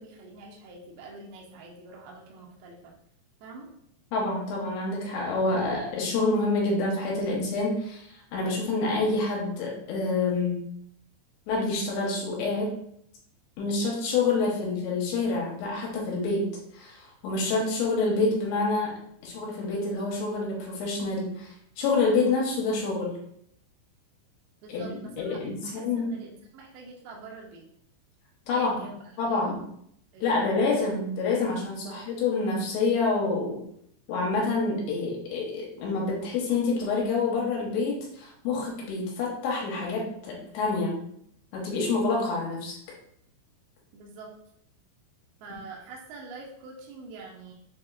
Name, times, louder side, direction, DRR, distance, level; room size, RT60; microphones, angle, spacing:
voice 1, 0.0-2.9 3.4-3.7 24.6-27.6 28.5-29.6 30.1-30.7 31.9-32.0 43.9-44.3 45.4-47.5, right 3 dB, 80° right, -2 dB, 2.3 m, -45 dB
voice 2, 4.1-10.6 11.5-12.7 13.6-16.5 16.7-19.0 19.2-23.1 24.7-26.1 28.5-28.8 29.2-29.6 30.2-33.6 34.1-41.0 41.5-42.8, left 3 dB, 75° left, -3 dB, 2.9 m, -27 dB
7.0 x 2.8 x 2.4 m, 0.71 s
omnidirectional pair, 5.2 m